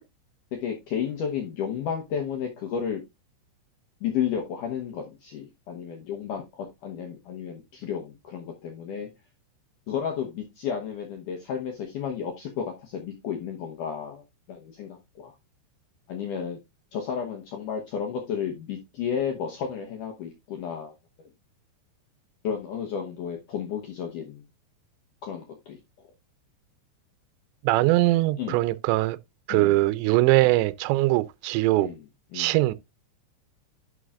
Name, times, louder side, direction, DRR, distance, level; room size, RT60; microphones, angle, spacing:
voice 1, 0.6-3.0 4.0-9.1 9.9-14.2 14.5-15.3 16.1-16.6 16.9-20.9 21.2-21.3 22.4-24.4 25.2-25.8 28.4-28.6 29.5-29.8 31.8-32.0 32.3-32.6, left 7 dB, 80° left, 1.8 m, -32 dB
voice 2, 27.6-29.2 29.5-31.9 32.3-32.8, right 18 dB, 80° right, 2.7 m, -21 dB
11.5 x 6.2 x 2.4 m
omnidirectional pair, 5.3 m